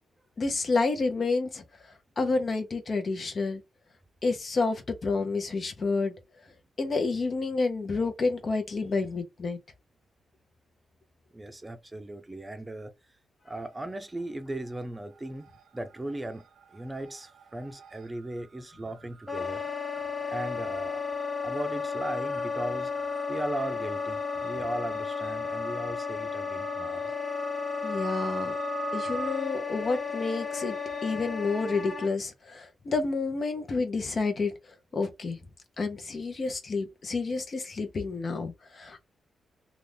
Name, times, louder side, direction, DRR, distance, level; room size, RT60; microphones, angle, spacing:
voice 1, 0.4-1.6 2.2-3.6 4.2-6.1 6.8-9.6 27.8-28.6 28.9-30.8 31.0-34.5 34.9-35.4 35.8-39.0, left 3 dB, 50° left, 0.8 m, -29 dB
voice 2, 11.3-12.9 13.4-15.5 15.7-16.4 16.7-19.6 20.2-21.0 21.4-22.9 23.3-27.1, right 1 dB, 20° right, 0.5 m, -37 dB
sound 1, 13.6-14.2 14.5-31.1, right 5 dB, 80° right, 0.5 m, -45 dB
Wind instrument woodwind instrument, 19.3-32.1, left 5 dB, 10° left, 0.9 m, -33 dB
2.5 x 2.4 x 3.3 m
supercardioid pair, 55°, 0 cm